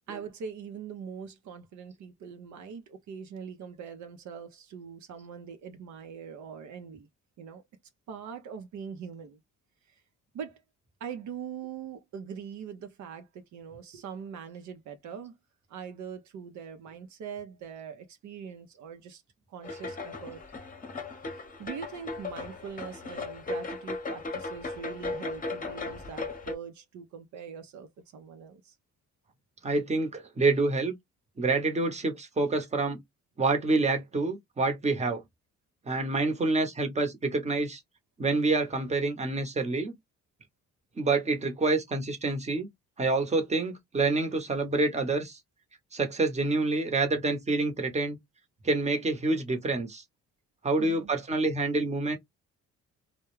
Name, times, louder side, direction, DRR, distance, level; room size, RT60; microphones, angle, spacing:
voice 1, 0.1-7.1 7.4-7.6 8.1-9.4 9.9-10.0 10.3-10.6 11.0-15.4 15.7-19.2 19.5-20.4 21.1-28.7 50.8-51.1, right 7 dB, 70° right, 0.6 m, -42 dB
sound 1, 19.6-26.5, left 3 dB, 30° left, 0.8 m, -37 dB
voice 2, 29.6-30.9 31.4-33.0 33.4-35.2 35.9-37.8 38.2-39.9 41.0-42.7 43.0-45.4 45.9-48.2 48.6-50.0 50.6-52.2, right 3 dB, 20° right, 0.9 m, -27 dB
2.2 x 2.1 x 3.1 m
cardioid pair, 90°, 30 cm